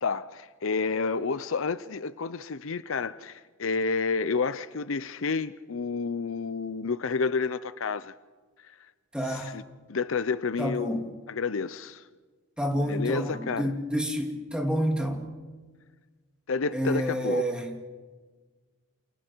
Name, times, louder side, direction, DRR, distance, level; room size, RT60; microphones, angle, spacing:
voice 1, 0.0-8.1 8.6-8.8 9.2-9.6 9.9-12.0 12.9-13.7 16.5-17.5, left 4 dB, 70° left, 0.6 m, -30 dB
voice 2, 9.1-9.5 10.6-11.1 12.6-15.2 16.7-17.7, equal, 5° right, 2.6 m, -29 dB
29.0 x 28.5 x 4.6 m
head